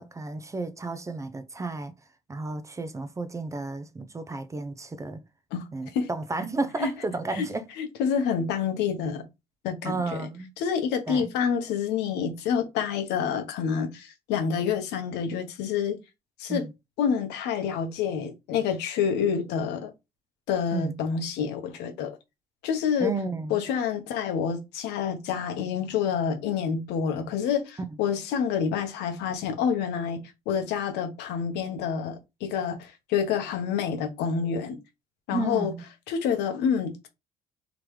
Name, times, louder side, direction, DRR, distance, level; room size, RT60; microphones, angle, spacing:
voice 1, 0.0-1.9 2.3-5.2 5.7-7.6 9.8-10.5 11.1-11.3 16.5-16.7 20.7-21.0 23.0-23.6 27.9-28.0 35.3-35.9, right 3 dB, 20° right, 0.5 m, -32 dB
voice 2, 7.8-9.2 9.6-10.2 10.6-16.0 16.4-16.6 17.0-19.9 20.5-22.2 22.6-23.1 23.5-34.8 35.3-35.7 36.1-37.1, left 7 dB, 90° left, 1.0 m, -28 dB
3.6 x 3.1 x 3.2 m
cardioid pair, 110°, 17 cm